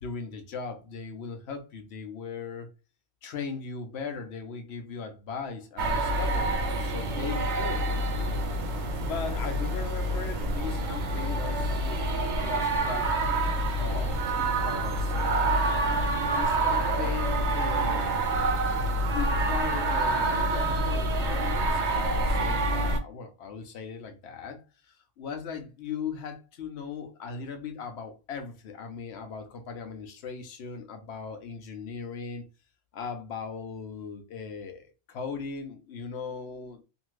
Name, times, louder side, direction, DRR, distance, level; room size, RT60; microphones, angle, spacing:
voice 1, 0.0-2.7 3.2-8.3 9.0-13.1 13.7-15.2 16.3-18.1 19.1-32.4 32.9-36.8, left 5 dB, 65° left, 0.8 m, -38 dB
sound 1, 5.8-23.0, right 2 dB, 70° right, 0.8 m, -27 dB
2.7 x 2.5 x 3.0 m
omnidirectional pair, 1.3 m